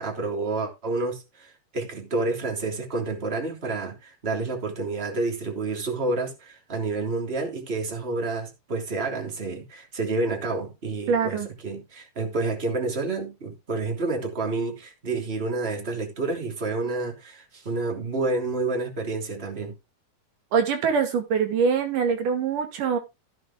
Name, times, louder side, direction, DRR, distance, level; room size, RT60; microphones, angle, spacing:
voice 1, 0.0-19.7, right 3 dB, 20° right, 3.0 m, -29 dB
voice 2, 11.1-11.5 20.5-23.0, right 6 dB, 85° right, 3.7 m, -23 dB
16.0 x 6.0 x 3.7 m
omnidirectional pair, 3.6 m